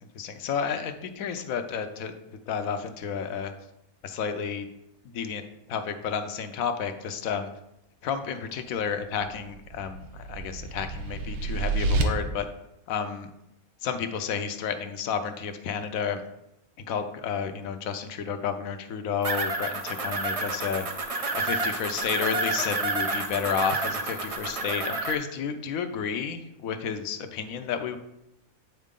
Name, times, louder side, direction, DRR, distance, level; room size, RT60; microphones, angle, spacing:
voice 1, 0.1-3.5 4.0-4.7 5.1-7.5 8.0-12.4 12.9-13.3 13.8-16.2 16.8-20.9 21.3-28.0, left 6 dB, 70° left, 8 dB, 1.1 m, -31 dB
sound 1, 9.4-12.0, right 3 dB, 85° right, 1.3 m, -29 dB
sound 2, 19.2-25.1, right 3 dB, 45° right, 0.4 m, -29 dB
9.2 x 4.4 x 3.7 m, 0.84 s
omnidirectional pair, 1.6 m